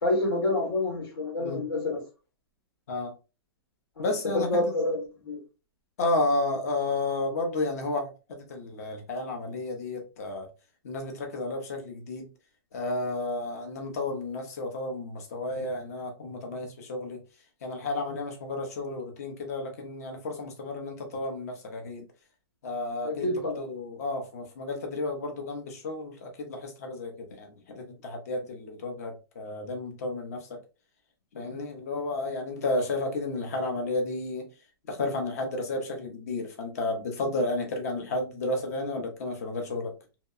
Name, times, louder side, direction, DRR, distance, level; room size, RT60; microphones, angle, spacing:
voice 1, 0.0-2.0 4.0-4.1 4.3-5.4 23.0-23.6, left 2 dB, 85° left, 1.5 m, -28 dB
voice 2, 4.0-4.6 6.0-10.5 10.8-12.3 12.7-17.2 17.6-22.0 22.6-30.6 31.3-34.5 34.9-39.9, left 2 dB, 40° left, 0.6 m, -32 dB
2.7 x 2.1 x 2.3 m
hypercardioid pair, 180°, 13 cm